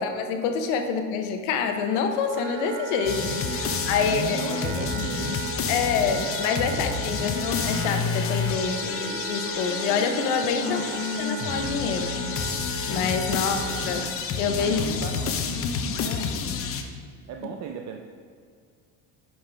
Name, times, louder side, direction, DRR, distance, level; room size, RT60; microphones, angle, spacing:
voice 1, 0.0-4.4 4.8-5.0 5.7-10.8 11.2-12.1 12.9-14.1 14.4-14.8 15.6-16.4, left 6 dB, 85° left, 6 dB, 0.8 m, -27 dB
Wind instrument woodwind instrument, 2.3-14.1, right 5 dB, 85° right, 1.0 m, -36 dB
sound 1, 3.1-16.8, left 6 dB, 40° left, 0.7 m, -29 dB
voice 2, 3.6-5.8 7.2-7.3 10.6-11.3 12.0-12.1 13.3-13.7 14.6-15.4 15.9-16.0 17.3-18.0, right 6 dB, 50° right, 3 dB, 0.6 m, -38 dB
8.7 x 5.6 x 3.4 m, 2.1 s
supercardioid pair, 100°, 34 cm